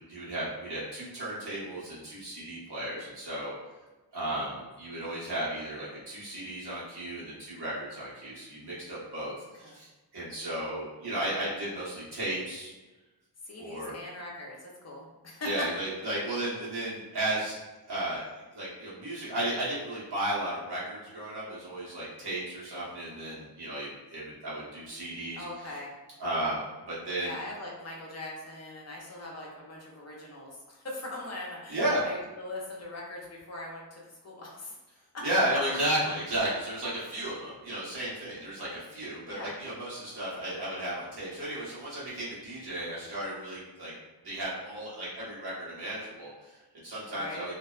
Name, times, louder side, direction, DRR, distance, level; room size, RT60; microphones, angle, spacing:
voice 1, 0.0-3.5 4.1-12.7 13.6-13.9 15.4-17.6 17.9-25.7 26.2-27.4 31.7-32.0 35.2-43.9 44.2-47.5, right 1 dB, 75° right, -9 dB, 1.2 m, -34 dB
voice 2, 13.4-15.5 25.3-25.9 27.2-31.8 32.0-34.8 35.1-35.2 39.2-39.5 47.1-47.5, left 1 dB, 40° left, -3 dB, 0.6 m, -41 dB
2.6 x 2.1 x 2.3 m, 1.2 s
wide cardioid pair, 100°, 40 cm